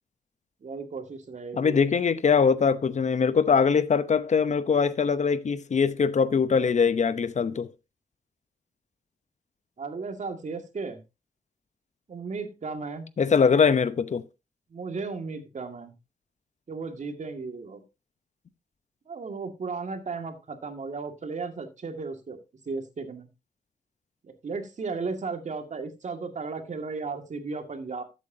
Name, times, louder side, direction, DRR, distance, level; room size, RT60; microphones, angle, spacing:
voice 1, 0.6-1.8 9.8-11.0 12.1-13.1 14.7-15.9 16.7-17.8 19.1-22.4 22.7-23.3 24.2-28.0, right 4 dB, 60° right, 2.1 m, -35 dB
voice 2, 1.5-7.7 13.2-14.2, left 6 dB, 55° left, 0.8 m, -22 dB
13.0 x 8.3 x 2.8 m
cardioid pair, 60°, 14 cm